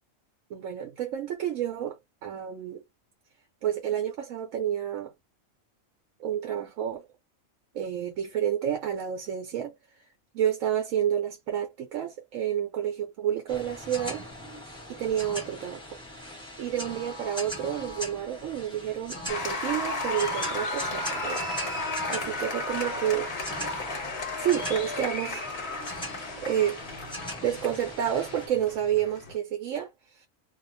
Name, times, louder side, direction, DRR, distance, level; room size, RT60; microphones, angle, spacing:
voice 1, 0.5-2.8 3.6-5.1 6.2-7.0 7.7-9.7 10.3-14.6 14.9-16.0 16.6-21.4 22.1-23.3 24.4-25.4 26.4-26.8 27.4-30.3, right 10 dB, 75° right, 1.0 m, -30 dB
sound 1, 13.5-28.5, equal, 5° left, 1.0 m, -40 dB
Applause, 19.3-29.4, left 2 dB, 55° left, 1.1 m, -34 dB
2.4 x 2.2 x 2.6 m
omnidirectional pair, 1.4 m